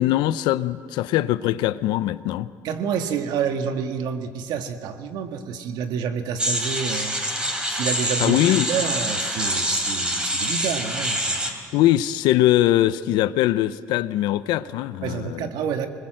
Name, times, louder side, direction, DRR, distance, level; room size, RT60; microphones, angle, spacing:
voice 1, 0.0-2.5 8.2-8.7 11.7-15.5, left 14 dB, 90° left, 0.7 m, -21 dB
voice 2, 2.6-11.6 15.0-15.9, right 7 dB, 75° right, 1.8 m, -29 dB
sound 1, 6.4-11.5, equal, 10° right, 3.5 m, -25 dB
25.5 x 20.5 x 7.8 m
cardioid pair, 115°, 7 cm